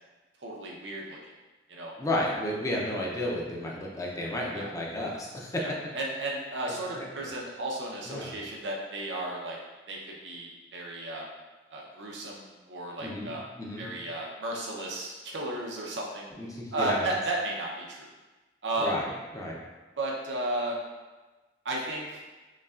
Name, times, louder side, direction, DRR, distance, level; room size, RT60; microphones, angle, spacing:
voice 1, 0.4-1.2 1.7-1.9 4.6-4.7 5.6-9.6 9.9-11.3 11.7-13.4 13.8-16.3 16.7-18.1 18.6-19.0 20.0-20.8 21.6-22.2, right 1 dB, 80° right, -2 dB, 0.8 m, -34 dB
voice 2, 2.0-5.6 6.9-7.0 8.1-8.3 13.0-13.3 13.6-13.9 16.4-17.1 18.8-19.6, left 1 dB, 20° left, -3 dB, 0.5 m, -32 dB
5.4 x 2.3 x 2.4 m, 1.2 s
head